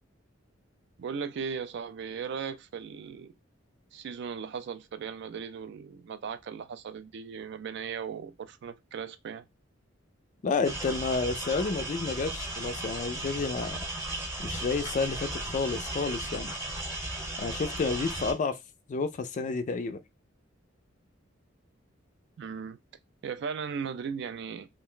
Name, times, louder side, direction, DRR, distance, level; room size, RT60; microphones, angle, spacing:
voice 1, 1.0-3.3 3.9-9.5 22.4-22.8 23.2-24.7, right 6 dB, 60° right, 0.3 m, -37 dB
voice 2, 10.4-13.8 14.4-16.5 17.4-18.6 18.9-20.0, left 4 dB, 40° left, 0.3 m, -30 dB
sound 1, 10.6-18.3, right 1 dB, 15° right, 0.8 m, -36 dB
2.4 x 2.1 x 3.7 m
head